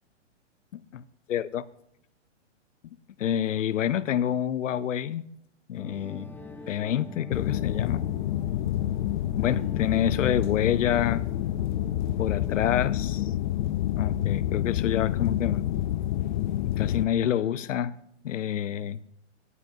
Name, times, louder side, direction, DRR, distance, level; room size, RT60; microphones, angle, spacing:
voice 1, 0.7-1.6 3.2-5.2 5.7-6.4 6.7-8.1 9.4-11.3 12.2-13.3 14.0-15.7 16.5-17.9 18.2-19.0, left 10 dB, 85° left, 0.6 m, -28 dB
sound 1, 5.8-13.3, left 2 dB, 5° left, 0.7 m, -44 dB
sound 2, 7.3-17.0, left 13 dB, 40° left, 0.4 m, -28 dB
17.5 x 7.7 x 2.7 m
hypercardioid pair, 135°, 37 cm